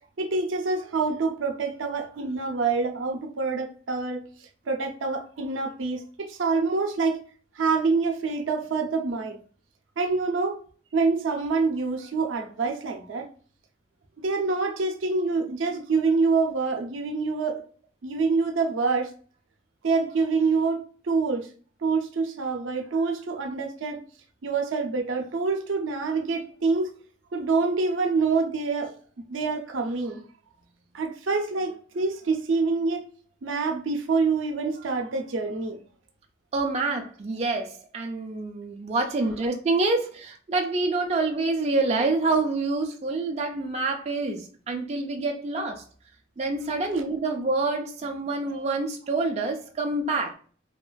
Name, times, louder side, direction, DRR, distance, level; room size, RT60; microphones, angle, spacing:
voice 1, 0.2-4.2 4.7-7.2 7.6-9.4 10.0-10.6 10.9-13.3 14.2-17.6 18.0-19.1 19.8-21.5 21.8-24.0 24.4-26.9 27.3-28.9 29.3-30.2 30.9-33.0 33.4-35.8, right 4 dB, 85° right, 0.6 m, -26 dB
voice 2, 36.5-45.8 46.4-50.3, right 3 dB, 35° right, 0.3 m, -27 dB
2.8 x 2.4 x 2.2 m
head